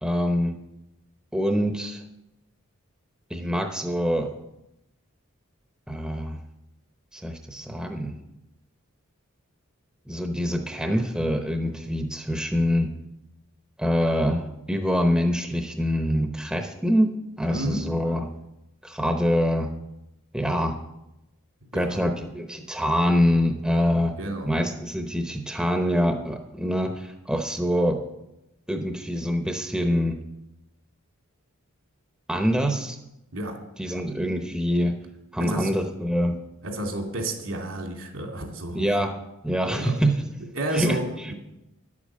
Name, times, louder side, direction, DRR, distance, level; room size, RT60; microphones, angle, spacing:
voice 1, 0.0-0.6 1.3-2.0 3.3-4.3 5.9-6.4 7.1-8.1 10.1-12.9 13.8-18.3 18.8-19.7 20.3-20.8 21.7-24.1 24.4-28.0 28.7-30.2 32.3-33.0 33.8-34.9 35.3-36.4 38.7-39.2 39.4-40.2 40.7-41.3, equal, 5° right, 4 dB, 0.8 m, -25 dB
voice 2, 17.5-17.9 21.7-22.0 24.2-24.5 33.3-33.6 35.4-35.7 36.6-38.9 39.7-40.0 40.5-41.3, right 1 dB, 75° right, 2 dB, 2.8 m, -31 dB
11.0 x 8.5 x 7.5 m, 0.91 s
head